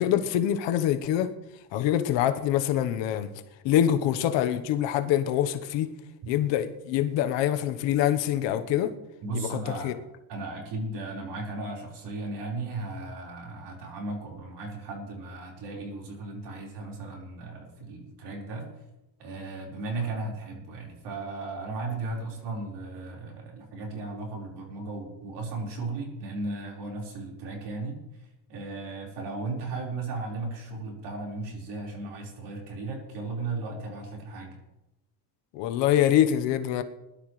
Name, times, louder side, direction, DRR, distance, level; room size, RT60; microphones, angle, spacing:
voice 1, 0.0-1.3 1.7-3.3 3.6-5.9 6.3-8.9 9.3-9.9 35.5-36.8, left 11 dB, 75° left, 1.2 m, -25 dB
voice 2, 9.2-9.9 10.3-18.7 19.2-28.0 28.5-34.6, right 3 dB, 65° right, 4.7 m, -36 dB
21.0 x 12.0 x 3.2 m
cardioid pair, 130°, 44 cm